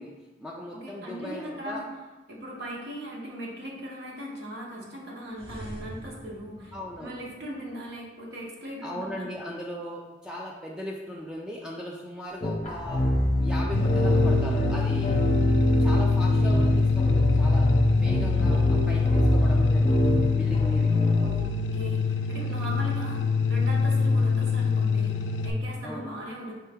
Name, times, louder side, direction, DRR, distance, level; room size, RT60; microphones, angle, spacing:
voice 1, 0.0-1.9 6.7-7.3 8.8-13.1 13.4-15.2 15.8-21.1 25.8-26.2, left 1 dB, 5° right, -3 dB, 0.3 m, -38 dB
voice 2, 0.7-1.9 2.3-6.7 7.0-9.3 21.2-21.5 21.7-26.5, equal, 65° right, -3 dB, 1.0 m, -39 dB
sound 1, 5.3-7.7 12.3-14.6, equal, 35° right, 0.7 m, -43 dB
sound 2, 12.4-21.4, equal, 35° left, 0.6 m, -26 dB
sound 3, 13.7-25.5, left 4 dB, 80° left, 0.4 m, -24 dB
4.5 x 3.3 x 3.4 m, 1.1 s
head